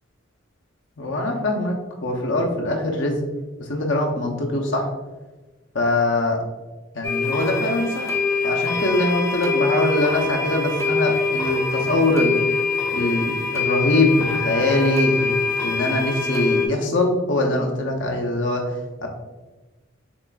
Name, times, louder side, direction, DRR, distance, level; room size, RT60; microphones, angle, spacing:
voice 1, 1.0-3.2 3.7-4.9 5.7-6.4 6.9-8.1 8.4-12.4 12.9-18.6 19.0-19.1, left 2 dB, 60° left, 1 dB, 0.7 m, -22 dB
sound 1, 7.0-16.7, left 4 dB, 15° left, 0.5 m, -24 dB
6.9 x 2.5 x 2.3 m, 1.2 s
head